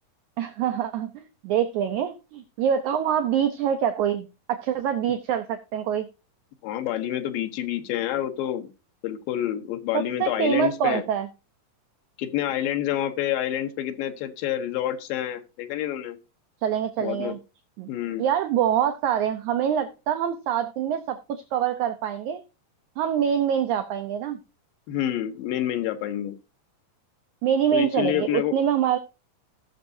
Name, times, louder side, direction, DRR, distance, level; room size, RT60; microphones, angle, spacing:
voice 1, 0.4-6.1 9.9-11.3 16.6-17.4 17.8-17.9 18.2-22.4 23.0-24.4 27.4-29.0, right 9 dB, 75° right, 8 dB, 1.9 m, -25 dB
voice 2, 6.6-8.7 9.0-11.0 12.2-16.2 17.0-17.4 17.9-18.2 24.9-26.4 27.7-28.6, left 12 dB, 90° left, 6 dB, 2.8 m, -28 dB
17.5 x 6.6 x 2.7 m, 0.28 s
omnidirectional pair, 4.0 m